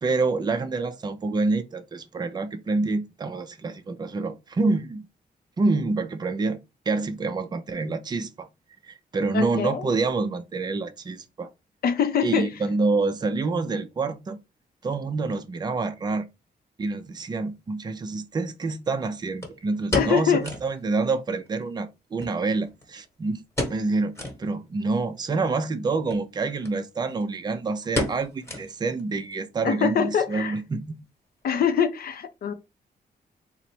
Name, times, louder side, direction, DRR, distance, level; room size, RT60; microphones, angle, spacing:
voice 1, 0.0-5.1 5.6-6.6 6.9-8.5 8.9-11.5 12.2-14.4 14.8-16.3 16.8-23.4 23.7-31.0, right 3 dB, 25° right, 0.5 m, -27 dB
voice 2, 9.3-9.8 11.8-12.5 19.9-20.5 29.6-30.6 31.4-32.5, left 7 dB, 70° left, 0.6 m, -24 dB
sound 1, 17.3-17.4 19.4-20.8 21.1-21.2 21.5-21.6 22.2-23.1 23.5-23.9 24.1-24.4 24.9-25.0 26.0-26.2 26.6-26.8 27.0-27.4 27.9-29.0 29.3-29.4 30.0-30.3 30.6-30.7, left 1 dB, 15° left, 1.3 m, -31 dB
4.0 x 2.1 x 4.3 m
wide cardioid pair, 165°, 16 cm